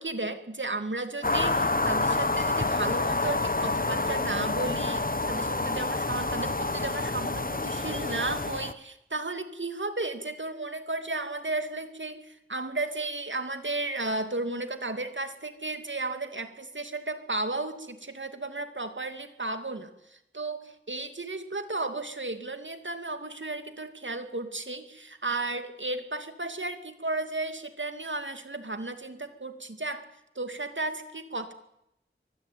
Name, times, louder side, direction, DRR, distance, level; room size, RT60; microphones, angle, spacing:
voice 1, 0.0-30.0 30.4-31.5, right 2 dB, 65° right, 8 dB, 2.6 m, -34 dB
sound 1, 1.2-8.7, left 2 dB, 45° left, 1.4 m, -28 dB
23.5 x 21.5 x 9.4 m, 0.84 s
wide cardioid pair, 50°, 21 cm